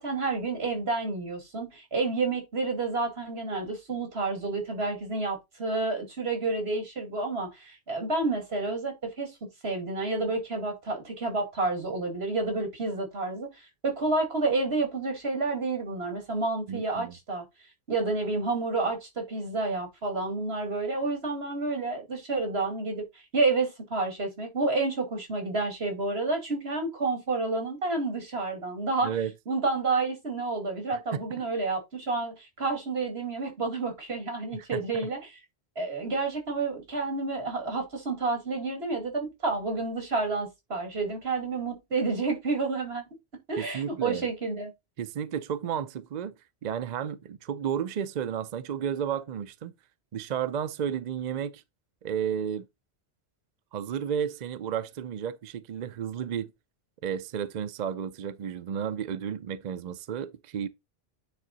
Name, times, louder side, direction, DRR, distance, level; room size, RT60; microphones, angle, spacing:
voice 1, 0.0-9.3 9.6-17.4 17.9-29.2 29.5-35.4 35.8-43.0 43.5-44.7, right 3 dB, 75° right, 2.6 m, -30 dB
voice 2, 16.7-17.1 29.0-29.3 30.9-31.2 34.5-34.8 43.6-44.2 45.0-46.3 46.6-49.7 50.1-51.6 52.0-52.7 53.7-56.5 57.0-60.7, right 8 dB, 50° right, 0.6 m, -32 dB
9.4 x 3.7 x 4.0 m
omnidirectional pair, 1.1 m